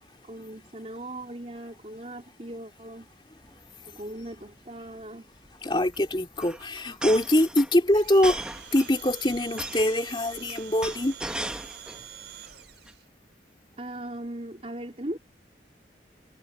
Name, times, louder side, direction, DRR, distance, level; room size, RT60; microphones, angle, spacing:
voice 1, 0.2-3.1 3.9-5.3 13.8-15.2, right 1 dB, 35° right, 3.6 m, -38 dB
sound 1, 3.4-3.6 3.9-4.0 4.2-4.5 5.5-12.1 12.4-12.9, right 1 dB, 5° right, 0.8 m, -38 dB
voice 2, 5.6-8.4 8.7-11.1, left 1 dB, 25° left, 2.5 m, -23 dB
Domestic sounds home sounds, 8.0-13.0, right 10 dB, 85° right, 6.6 m, -45 dB
head